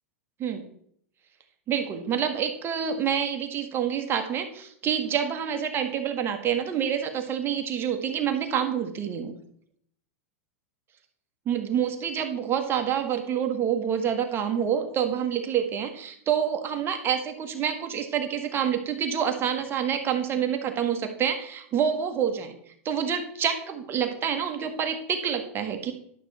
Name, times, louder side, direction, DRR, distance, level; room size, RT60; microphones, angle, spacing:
voice 1, 1.7-9.3 11.4-22.6 22.8-25.9, right 8 dB, 30° right, 5 dB, 1.6 m, -27 dB
11.5 x 6.3 x 4.2 m, 0.68 s
hypercardioid pair, 110°, 8 cm